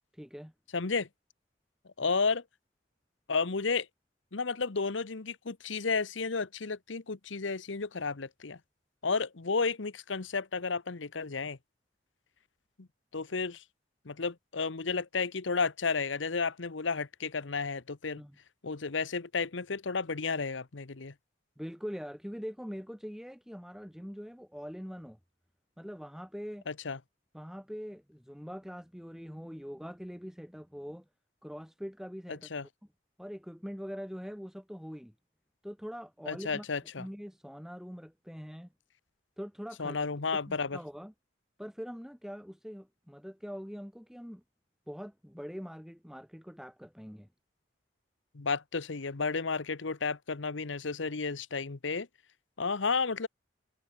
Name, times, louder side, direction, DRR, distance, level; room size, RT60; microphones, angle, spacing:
voice 1, 0.1-0.5 18.2-18.4 21.6-25.2 25.8-26.6 27.3-31.0 31.4-32.5 33.2-35.1 35.6-36.7 37.0-38.7 39.4-40.0 40.5-41.1 41.6-44.4 44.9-47.3, equal, ahead, 3.1 m, -43 dB
voice 2, 0.7-1.1 2.0-2.4 3.3-3.9 4.3-8.6 9.0-11.6 12.8-12.9 13.1-13.6 14.0-18.2 18.6-21.1 26.7-27.0 32.3-32.7 36.3-37.1 39.8-40.8 48.3-52.1 52.6-53.3, left 4 dB, 85° left, 1.0 m, -32 dB
head